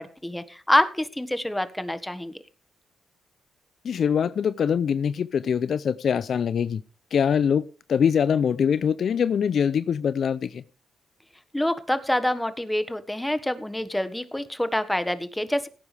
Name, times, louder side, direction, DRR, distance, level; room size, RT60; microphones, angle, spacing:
voice 1, 0.0-2.3 11.5-15.7, left 1 dB, 10° left, 12 dB, 1.5 m, -26 dB
voice 2, 3.8-6.8 7.1-7.6 7.9-10.6, left 7 dB, 65° left, 16 dB, 0.5 m, -23 dB
17.5 x 9.7 x 3.4 m, 0.36 s
supercardioid pair, 60°, 0 cm